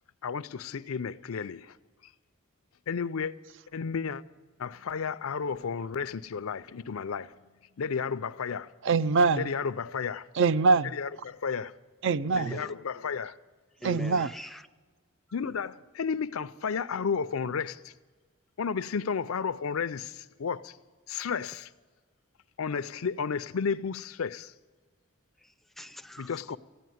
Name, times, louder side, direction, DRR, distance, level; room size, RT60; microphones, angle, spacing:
voice 1, 0.2-1.7 2.9-3.3 3.7-4.2 4.6-7.3 7.8-8.7 9.4-10.3 10.9-11.7 12.3-13.4 15.3-17.9 18.6-20.8 21.1-21.7 22.6-24.5 26.2-26.6, left 6 dB, 90° left, 0.5 m, -32 dB
voice 2, 8.8-9.5 10.3-10.9 12.0-12.6 13.8-14.3, right 4 dB, 65° right, 0.4 m, -24 dB
voice 3, 12.3-12.7 13.8-14.6 25.4-26.6, right 2 dB, ahead, 0.4 m, -42 dB
15.0 x 9.3 x 9.3 m
head